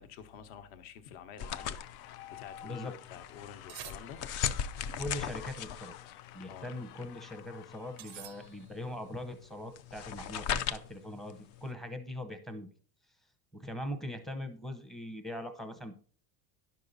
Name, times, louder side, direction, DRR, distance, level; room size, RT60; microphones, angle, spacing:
voice 1, 0.0-4.2 6.5-6.7, left 8 dB, 55° left, 1.2 m, -49 dB
sound 1, 1.4-8.6, left 12 dB, 75° left, 0.8 m, -51 dB
sound 2, 1.4-11.7, left 8 dB, 35° left, 0.4 m, -39 dB
sound 3, 3.7-4.6 8.0-8.9, right 15 dB, 45° right, 0.4 m, -49 dB
voice 2, 4.9-6.0 6.3-12.7 13.5-15.9, left 1 dB, ahead, 0.7 m, -41 dB
11.0 x 6.5 x 4.0 m
cardioid pair, 175°, 46 cm